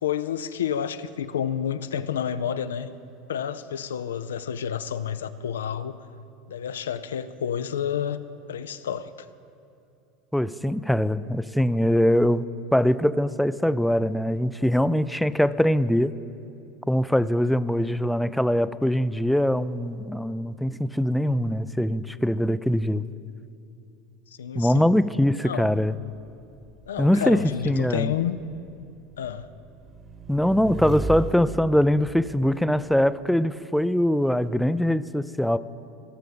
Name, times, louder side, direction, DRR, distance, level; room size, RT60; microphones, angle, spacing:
voice 1, 0.0-2.9 3.3-6.0 6.5-8.2 8.5-9.1 24.4-24.8 25.4-25.7 26.9-28.4 29.2-29.5, left 9 dB, 80° left, 13 dB, 0.4 m, -29 dB
voice 2, 10.3-12.5 12.7-16.1 16.9-23.0 24.6-25.9 27.0-27.4 27.7-28.1 30.3-35.6, equal, ahead, 15 dB, 0.3 m, -22 dB
Motorcycle / Engine, 26.0-33.1, right 2 dB, 25° right, 1.1 m, -37 dB
17.0 x 6.7 x 5.2 m, 2.6 s
hypercardioid pair, 80°, 0 cm